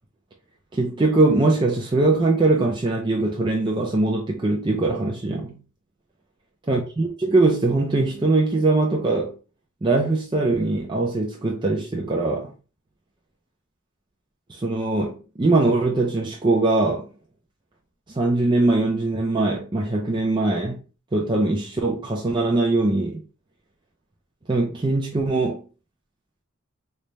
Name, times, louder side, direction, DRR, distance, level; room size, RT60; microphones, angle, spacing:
voice 1, 0.7-5.6 6.7-9.3 9.8-12.5 14.5-17.1 18.1-20.8 21.1-23.2 24.5-25.6, right 2 dB, 20° right, 0.4 m, -21 dB
3.2 x 2.1 x 4.0 m
head